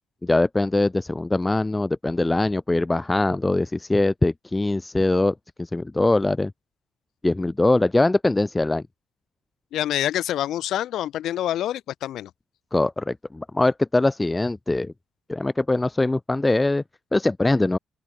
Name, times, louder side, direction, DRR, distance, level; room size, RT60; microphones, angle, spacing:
voice 1, 0.2-6.5 7.2-8.8 12.7-14.9 15.3-16.8 17.1-17.8, left 2 dB, 15° left, 1.4 m, -22 dB
voice 2, 9.7-12.3, left 12 dB, 80° left, 2.1 m, -26 dB
open air
cardioid pair, 90°, 0 cm